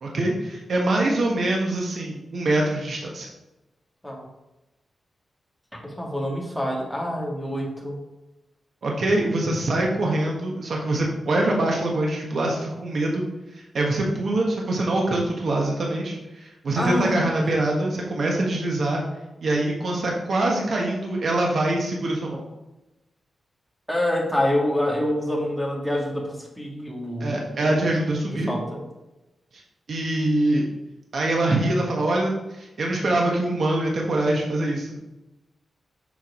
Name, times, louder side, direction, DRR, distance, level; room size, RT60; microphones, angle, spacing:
voice 1, 0.0-3.3 8.8-13.2 13.5-19.0 19.4-22.4 27.2-28.5 29.5-29.6 29.9-30.6 31.1-35.0, right 2 dB, 60° right, -1 dB, 1.3 m, -24 dB
voice 2, 5.8-8.0 16.8-17.2 23.9-27.8 28.3-28.8, left 1 dB, ahead, -2 dB, 1.8 m, -26 dB
7.4 x 4.6 x 4.8 m, 1.0 s
wide cardioid pair, 125°, 0 cm